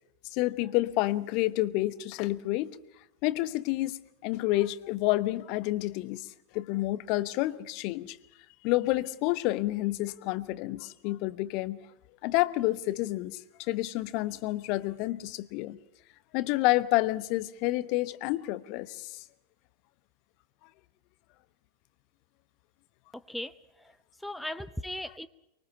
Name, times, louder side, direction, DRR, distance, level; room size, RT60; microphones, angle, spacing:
voice 1, 0.3-2.8 3.2-6.3 6.5-8.2 8.6-11.8 12.2-15.8 16.3-19.2, left 18 dB, 45° left, 16 dB, 1.0 m, -29 dB
voice 2, 23.1-25.3, left 1 dB, ahead, 12 dB, 0.7 m, -38 dB
24.5 x 23.0 x 5.7 m, 0.83 s
figure-of-eight pair, 90°, 0 cm